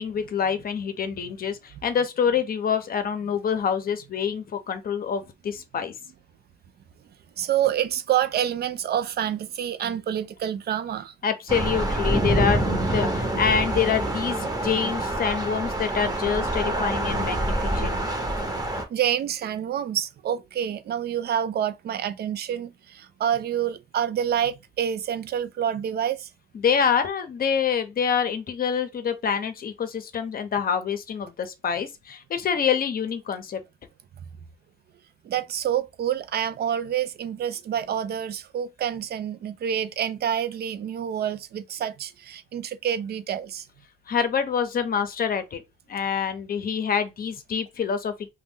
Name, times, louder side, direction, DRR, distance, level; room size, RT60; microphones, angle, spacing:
voice 1, 0.0-5.9 11.2-18.0 26.5-33.6 44.1-45.6 45.9-48.3, left 7 dB, 50° left, 0.7 m, -26 dB
voice 2, 7.4-11.1 18.6-26.3 35.2-43.7, right 9 dB, 55° right, 0.4 m, -27 dB
Thunder / Rain, 11.5-18.8, right 1 dB, 20° right, 0.9 m, -26 dB
2.5 x 2.2 x 3.5 m
cardioid pair, 90°, 20 cm